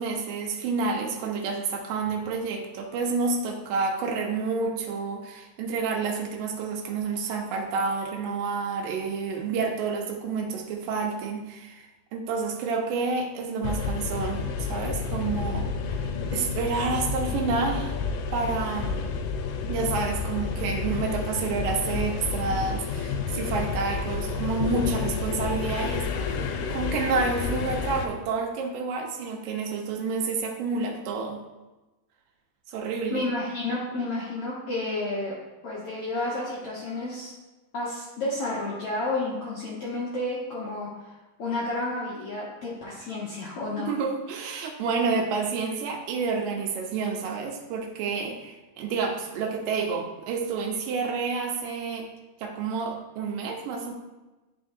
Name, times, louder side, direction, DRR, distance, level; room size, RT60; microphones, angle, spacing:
voice 1, 0.0-17.9 18.3-19.1 19.7-31.4 32.7-33.2 43.8-52.1 52.4-53.9, right 4 dB, 85° right, 1 dB, 2.5 m, -29 dB
sound 1, 13.6-28.1, left 5 dB, 85° left, 2.2 m, -30 dB
voice 2, 33.1-35.3 35.6-37.3 37.7-43.9, left 2 dB, 60° left, -7 dB, 1.6 m, -31 dB
10.0 x 4.4 x 2.6 m, 1.1 s
omnidirectional pair, 3.8 m